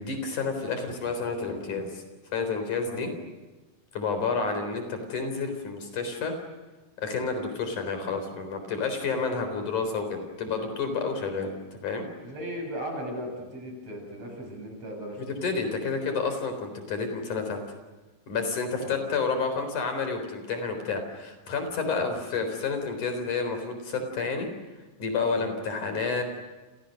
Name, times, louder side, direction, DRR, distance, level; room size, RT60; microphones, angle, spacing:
voice 1, 0.0-2.0 2.3-3.1 3.9-6.3 7.0-11.5 11.8-12.1 15.2-17.6 18.3-24.5 25.0-26.2, left 4 dB, 60° left, 7 dB, 5.3 m, -30 dB
voice 2, 12.2-15.5 18.8-18.9 25.3-25.5, equal, 45° right, 2 dB, 8.9 m, -37 dB
29.5 x 29.5 x 6.5 m, 1.2 s
omnidirectional pair, 4.0 m